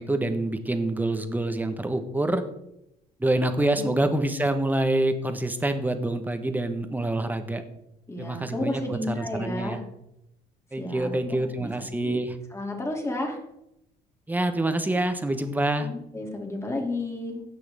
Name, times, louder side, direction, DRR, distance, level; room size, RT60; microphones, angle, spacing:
voice 1, 0.0-2.4 3.2-7.6 8.2-9.8 10.7-12.4 14.3-15.9, right 1 dB, 10° right, 9 dB, 1.1 m, -26 dB
voice 2, 8.1-9.8 10.8-11.7 12.0-12.2 12.5-13.4 15.8-17.4, left 2 dB, 15° left, 1 dB, 2.6 m, -32 dB
16.0 x 6.1 x 3.5 m, 0.83 s
cardioid pair, 110°, 17 cm